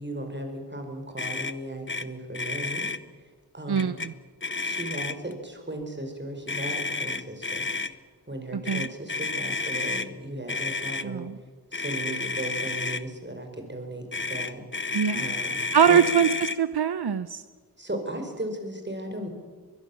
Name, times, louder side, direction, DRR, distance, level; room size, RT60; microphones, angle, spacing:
voice 1, 0.0-2.9 3.5-4.0 4.6-8.0 8.3-11.3 11.7-14.6 15.2-15.6 15.9-16.0 17.8-19.3, right 1 dB, 30° right, 4 dB, 5.3 m, -36 dB
Motor vehicle (road), 1.2-1.5 1.9-2.0 2.3-3.0 3.8-4.1 4.4-5.3 6.5-7.9 8.6-10.1 10.5-11.1 11.7-13.0 14.1-16.6, left 3 dB, 30° left, 0.9 m, -31 dB
voice 2, 3.7-4.1 8.5-8.9 11.0-11.4 14.9-15.3 15.7-17.4, right 7 dB, 85° right, 13 dB, 0.8 m, -23 dB
23.5 x 22.0 x 7.3 m, 1.5 s
wide cardioid pair, 65°, 38 cm